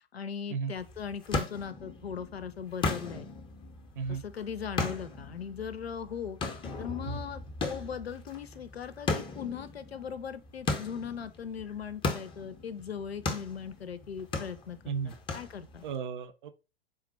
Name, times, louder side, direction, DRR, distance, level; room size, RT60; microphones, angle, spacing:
voice 1, 0.1-3.3 4.1-6.4 6.8-15.8, left 7 dB, 85° left, 0.6 m, -39 dB
sound 1, 0.8-16.0, left 3 dB, 15° left, 0.6 m, -37 dB
voice 2, 15.8-16.5, right 6 dB, 55° right, 0.6 m, -34 dB
3.7 x 2.2 x 4.0 m
figure-of-eight pair, 100°, 30 cm